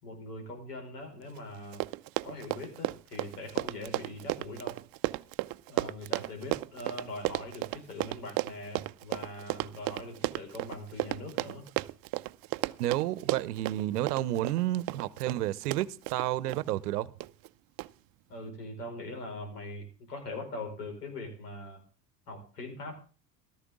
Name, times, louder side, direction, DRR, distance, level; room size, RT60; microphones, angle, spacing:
voice 1, 0.0-1.8 2.2-4.8 5.7-11.6 18.3-21.8 22.3-22.9, left 2 dB, 80° left, 5.2 m, -42 dB
Run, 1.4-1.5 1.6-16.6 17.2-17.5 17.8-17.9, right 20 dB, 50° right, 0.7 m, -34 dB
voice 2, 12.8-17.1, right 14 dB, 75° right, 0.9 m, -30 dB
15.0 x 13.5 x 3.6 m
hypercardioid pair, 80°, 46 cm